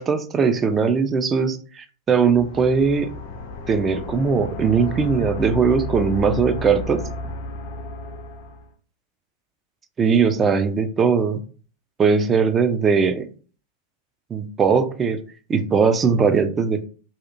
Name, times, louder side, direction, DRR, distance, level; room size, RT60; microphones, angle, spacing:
voice 1, 0.0-3.1 3.7-7.0 10.0-11.4 12.0-13.3 14.3-15.2 15.5-16.8, right 5 dB, 20° right, 10 dB, 0.3 m, -20 dB
sound 1, 2.2-8.7, left 1 dB, 55° left, 0.4 m, -32 dB
2.8 x 2.3 x 2.5 m, 0.41 s
figure-of-eight pair, 90°, 0 cm